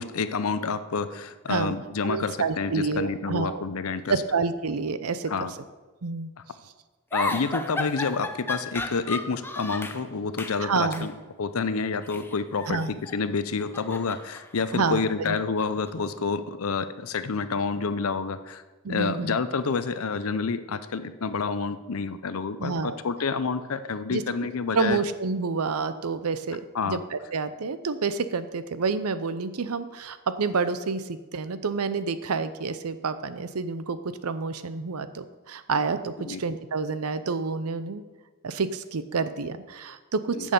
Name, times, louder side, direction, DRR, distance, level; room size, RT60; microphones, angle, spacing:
voice 1, 0.0-4.1 5.3-5.5 7.1-11.1 11.4-18.6 18.9-25.0 26.7-27.0 36.2-36.4 40.3-40.5, left 4 dB, 70° left, 12 dB, 0.6 m, -29 dB
voice 2, 2.0-3.6 4.1-5.3 6.0-6.3 10.6-11.1 12.7-13.0 14.7-15.4 18.8-19.4 22.6-23.0 24.1-24.2 24.7-26.6 26.9-38.0 38.4-40.5, right 4 dB, 80° right, 12 dB, 0.7 m, -28 dB
sound 1, 7.1-10.0 10.4-10.6 10.9-11.1 12.0-13.2 13.5-15.9, left 2 dB, 10° left, 0.5 m, -34 dB
9.1 x 6.3 x 6.8 m, 1.3 s
head